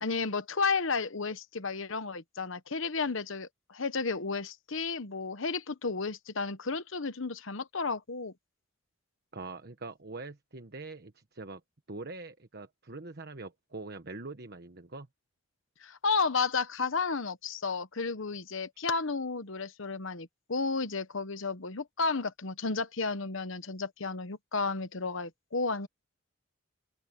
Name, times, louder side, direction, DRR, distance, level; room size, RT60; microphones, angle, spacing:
voice 1, 0.0-8.3 15.8-25.9, left 4 dB, 60° left, 1.1 m, -32 dB
voice 2, 9.3-11.6 11.9-15.1, right 3 dB, 50° right, 1.3 m, -43 dB
open air
head